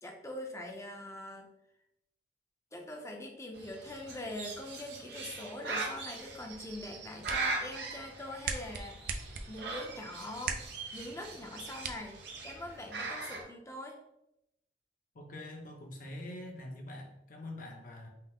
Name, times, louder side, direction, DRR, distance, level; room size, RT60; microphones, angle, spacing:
voice 1, 0.0-1.5 2.7-10.6 10.9-14.0, left 1 dB, 15° left, 2 dB, 0.6 m, -43 dB
Bird, 3.5-13.4, right 3 dB, 70° right, 0.9 m, -41 dB
sound 1, 6.9-12.8, right 5 dB, 50° right, 0.4 m, -43 dB
voice 2, 15.1-18.1, left 1 dB, 50° left, 2 dB, 0.8 m, -44 dB
5.5 x 2.0 x 3.5 m, 0.84 s
head